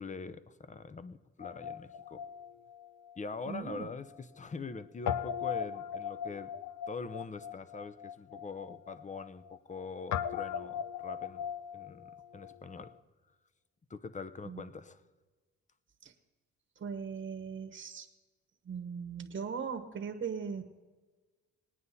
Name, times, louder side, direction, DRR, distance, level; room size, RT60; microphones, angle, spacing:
voice 1, 0.0-2.2 3.2-6.5 6.9-11.5 11.7-13.0 13.9-15.0, left 4 dB, 25° left, 14 dB, 0.8 m, -43 dB
Guitar, 1.4-3.8 4.1-4.2 5.1-12.9, left 8 dB, 65° left, 0.7 m, -39 dB
voice 2, 3.5-3.9 14.4-14.6 16.0-16.1 16.8-18.1 18.6-20.6, right 6 dB, 45° right, 4 dB, 1.3 m, -39 dB
20.0 x 9.4 x 4.2 m, 1.3 s
cardioid pair, 90°, 30 cm